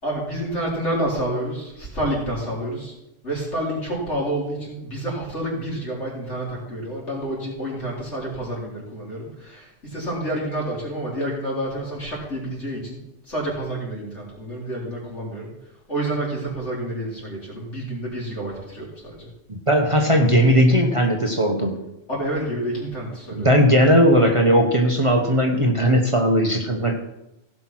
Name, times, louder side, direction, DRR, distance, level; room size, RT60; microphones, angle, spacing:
voice 1, 0.0-2.9 3.2-13.0 13.3-15.5 15.9-19.3 22.1-23.5, right 1 dB, 70° left, -5 dB, 4.5 m, -29 dB
voice 2, 19.5-21.8 23.3-26.9, equal, 25° right, 2 dB, 1.2 m, -18 dB
16.0 x 6.1 x 6.2 m, 0.88 s
omnidirectional pair, 1.2 m